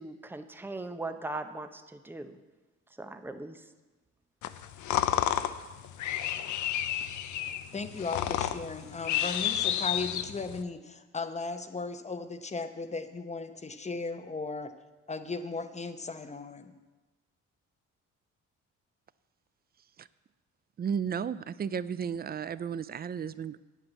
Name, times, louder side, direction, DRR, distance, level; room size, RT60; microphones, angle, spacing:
voice 1, 0.0-2.4 3.0-3.6, right 2 dB, 5° right, 0.8 m, -39 dB
sound 1, 4.4-10.6, left 11 dB, 75° left, 0.7 m, -31 dB
voice 2, 7.7-14.7 15.1-16.8, left 3 dB, 20° left, 0.9 m, -36 dB
voice 3, 20.8-23.6, right 7 dB, 30° right, 0.4 m, -33 dB
9.0 x 8.1 x 7.4 m
cardioid pair, 90°, 30 cm